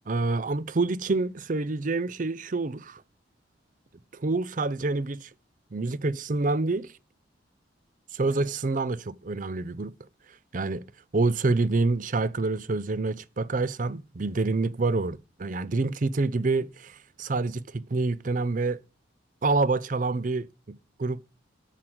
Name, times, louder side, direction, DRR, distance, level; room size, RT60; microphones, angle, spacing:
voice 1, 0.1-3.0 4.1-5.3 5.7-6.9 8.1-9.9 10.5-10.8 11.1-18.8 19.4-21.3, right 3 dB, 45° right, 0.5 m, -27 dB
9.9 x 4.5 x 7.8 m
head